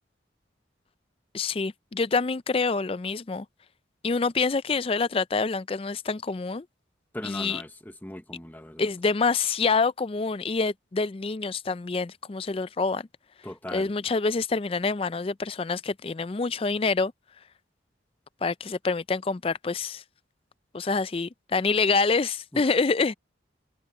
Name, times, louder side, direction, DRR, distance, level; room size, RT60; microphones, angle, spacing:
voice 1, 1.3-3.5 4.0-6.7 7.2-7.6 8.8-13.1 13.7-17.1 18.4-20.0 20.7-23.1, left 4 dB, 30° left, 0.4 m, -26 dB
voice 2, 7.1-7.7 8.0-8.8 13.4-13.9 22.5-22.6, left 1 dB, 10° left, 0.9 m, -38 dB
head